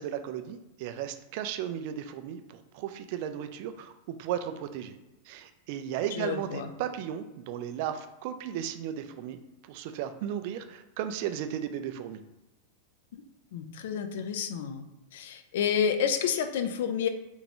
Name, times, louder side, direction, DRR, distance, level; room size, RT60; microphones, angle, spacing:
voice 1, 0.0-5.0 5.3-9.4 9.6-12.2, right 10 dB, 45° right, 8 dB, 0.3 m, -35 dB
voice 2, 6.1-6.7 13.1-13.2 13.5-14.8 15.1-17.1, left 7 dB, 55° left, 7 dB, 0.3 m, -29 dB
3.5 x 2.9 x 2.9 m, 0.97 s
figure-of-eight pair, 90°, 0 cm